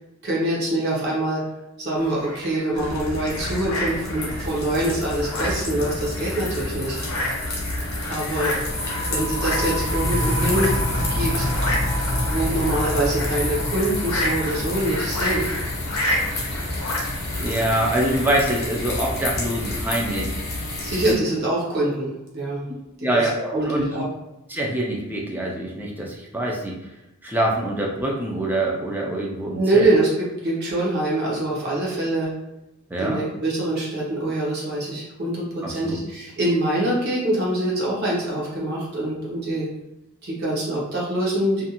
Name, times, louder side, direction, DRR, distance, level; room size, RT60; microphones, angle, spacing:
voice 1, 0.2-1.4 1.8-7.1 8.1-8.5 9.1-10.7 11.1-11.4 12.1-15.5 20.8-22.6 23.5-24.1 29.5-30.1 30.4-32.3 33.0-39.7 40.2-41.6, right 1 dB, 50° right, -5 dB, 0.8 m, -24 dB
sound 1, 2.0-18.4, left 1 dB, 80° left, 0.6 m, -31 dB
sound 2, 2.7-21.1, left 2 dB, 50° left, 0.8 m, -30 dB
sound 3, 8.5-19.9, left 1 dB, 80° right, 1.0 m, -29 dB
voice 2, 17.4-20.3 20.9-21.2 23.0-24.0 24.5-26.7 27.2-30.0 32.9-33.2 35.6-36.0, right 1 dB, 10° right, -2 dB, 0.4 m, -25 dB
2.5 x 2.3 x 2.8 m, 0.93 s
head